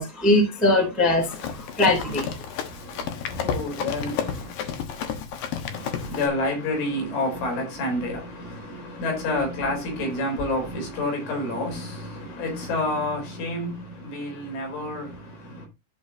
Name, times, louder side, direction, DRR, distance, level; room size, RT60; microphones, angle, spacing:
voice 1, 0.0-2.3, left 2 dB, ahead, 1.6 m, -21 dB
Run, 1.2-6.3, left 7 dB, 90° left, 1.9 m, -31 dB
voice 2, 2.6-4.5 5.6-15.7, left 1 dB, 65° left, 6.1 m, -29 dB
13.5 x 5.1 x 2.8 m
omnidirectional pair, 6.0 m